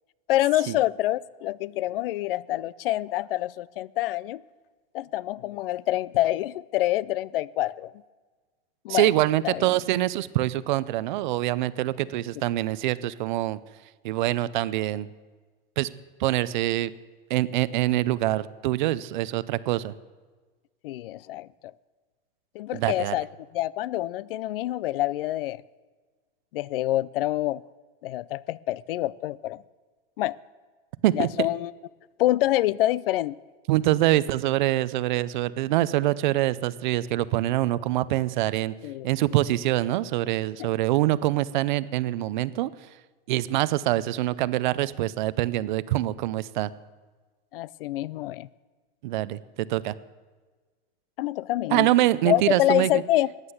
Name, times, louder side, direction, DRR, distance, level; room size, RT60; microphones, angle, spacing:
voice 1, 0.3-4.4 4.9-7.9 8.8-9.1 9.4-9.7 20.8-21.7 22.5-23.3 23.5-25.6 26.5-27.6 28.0-29.6 30.2-30.4 31.1-31.7 32.2-33.3 38.8-39.1 47.5-48.5 51.2-51.9 52.3-53.3, left 15 dB, 65° left, 23 dB, 0.5 m, -26 dB
voice 2, 8.9-13.6 14.0-15.1 15.8-15.9 16.2-16.9 17.3-19.9 22.7-23.2 31.0-31.5 33.7-38.7 39.0-42.7 43.3-46.7 49.0-49.9 51.7-53.0, right 15 dB, 50° right, 17 dB, 0.6 m, -25 dB
14.5 x 9.8 x 8.0 m, 1.4 s
supercardioid pair, 170°, 30 cm